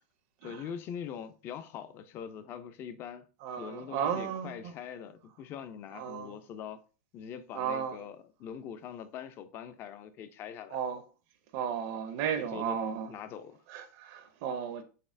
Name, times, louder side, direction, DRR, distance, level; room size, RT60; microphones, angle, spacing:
voice 1, 0.4-3.3 3.6-6.8 7.1-10.8 12.4-12.8 13.1-13.6, left 8 dB, 25° left, 0.3 m, -43 dB
voice 2, 3.4-4.7 5.9-6.3 7.5-8.0 10.7-11.0 11.5-13.1 13.7-14.8, right 8 dB, 40° right, 0.5 m, -34 dB
4.1 x 3.2 x 2.5 m
supercardioid pair, 150°, 9 cm